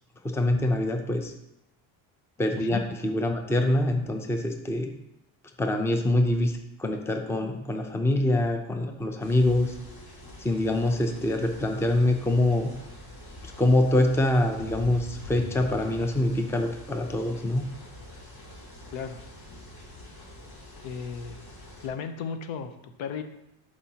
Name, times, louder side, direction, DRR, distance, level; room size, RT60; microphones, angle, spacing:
voice 1, 0.2-1.3 2.4-4.9 5.6-9.7 10.4-12.7 13.4-17.6, left 1 dB, 5° left, 5 dB, 0.6 m, -25 dB
sound 1, 9.2-21.9, left 1 dB, 50° left, 3.0 m, -45 dB
voice 2, 18.9-19.3 20.8-21.4 21.8-23.2, left 6 dB, 70° left, 8 dB, 0.9 m, -35 dB
11.0 x 4.8 x 2.9 m, 0.87 s
cardioid pair, 120°, 47 cm